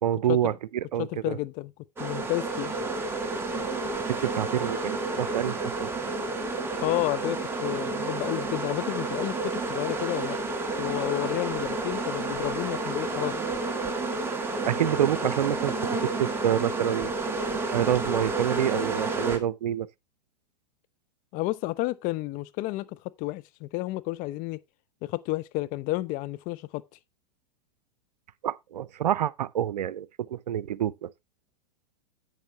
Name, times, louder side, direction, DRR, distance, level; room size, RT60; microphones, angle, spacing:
voice 1, 0.0-1.4 4.1-6.3 14.6-17.1 17.7-19.9 28.4-31.1, right 11 dB, 75° right, 0.7 m, -28 dB
voice 2, 1.0-1.7 2.0-2.8 6.8-10.4 10.8-13.4 21.3-24.6 25.0-26.8, left 19 dB, 40° left, 0.7 m, -31 dB
sound 1, 2.0-19.4, right 3 dB, 10° right, 2.0 m, -30 dB
10.5 x 8.2 x 2.9 m
hypercardioid pair, 110°, 21 cm